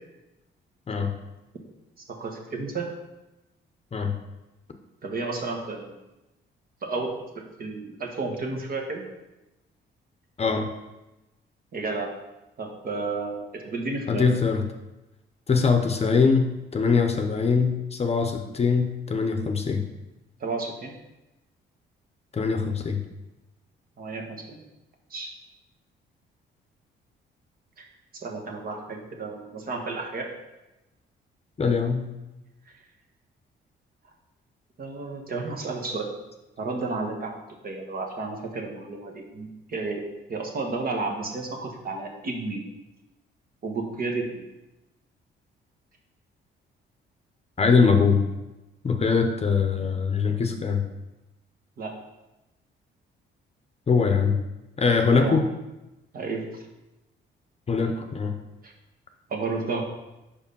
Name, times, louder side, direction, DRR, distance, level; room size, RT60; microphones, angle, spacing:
voice 1, 2.1-2.9 5.0-6.0 6.8-9.0 11.7-12.1 12.6-14.3 20.4-20.9 24.0-24.6 25.1-25.3 27.8-27.9 28.2-30.3 34.8-36.1 36.6-40.0 40.3-42.6 43.6-44.5 51.8-51.9 55.1-55.4 56.1-56.6 58.6-58.7 59.3-59.8, right 3 dB, 50° right, 2 dB, 1.2 m, -32 dB
voice 2, 10.4-10.7 14.1-14.6 15.5-19.8 22.3-23.0 31.6-32.1 47.6-48.2 48.8-50.8 53.9-54.4 54.8-55.5 57.7-58.3, left 5 dB, 30° left, 5 dB, 0.7 m, -22 dB
5.1 x 4.9 x 5.4 m, 1.0 s
cardioid pair, 90°, 20 cm